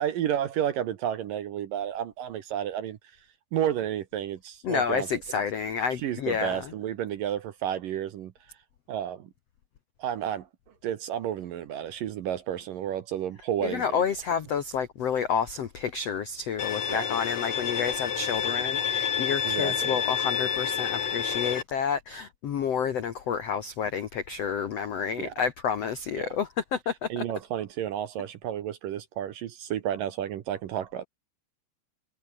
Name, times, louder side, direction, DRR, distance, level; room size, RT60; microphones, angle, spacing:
voice 1, 0.0-3.0 3.5-5.1 6.0-8.3 8.9-9.3 10.0-10.5 10.8-14.0 16.9-17.1 19.4-20.0 25.2-25.3 26.2-26.3 27.1-31.1, right 10 dB, 65° right, 2.4 m, -31 dB
voice 2, 4.6-6.7 13.6-27.2, left 7 dB, 80° left, 1.4 m, -30 dB
Bowed string instrument, 16.6-21.6, left 8 dB, 50° left, 2.5 m, -29 dB
omnidirectional pair, 5.1 m